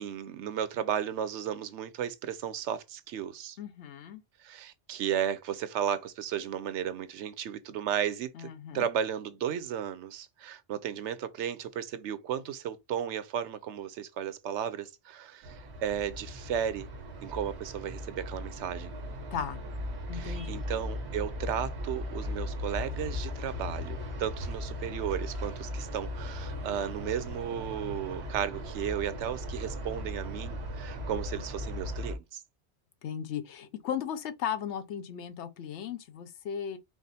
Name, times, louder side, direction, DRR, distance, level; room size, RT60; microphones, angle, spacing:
voice 1, 0.0-3.6 4.4-16.9 17.2-18.9 20.1-32.4, right 9 dB, 85° right, 0.9 m, -34 dB
voice 2, 3.6-4.2 8.3-8.9 19.3-19.6 20.1-20.6 33.0-36.8, left 8 dB, 80° left, 1.0 m, -36 dB
sound 1, 15.4-32.2, left 1 dB, 70° right, 1.3 m, -38 dB
4.8 x 2.0 x 4.1 m
omnidirectional pair, 1.2 m